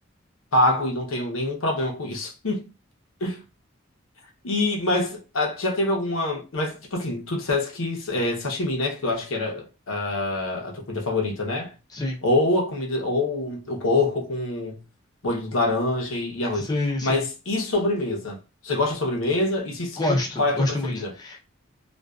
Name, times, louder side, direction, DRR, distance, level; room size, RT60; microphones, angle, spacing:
voice 1, 0.5-2.7 3.2-3.4 4.4-11.7 12.2-14.8 15.2-16.7 17.0-18.4 18.6-21.1, left 2 dB, 90° left, 0.7 m, -25 dB
voice 2, 16.6-17.2 20.0-21.4, left 1 dB, 20° left, 0.5 m, -26 dB
2.5 x 2.2 x 2.3 m
head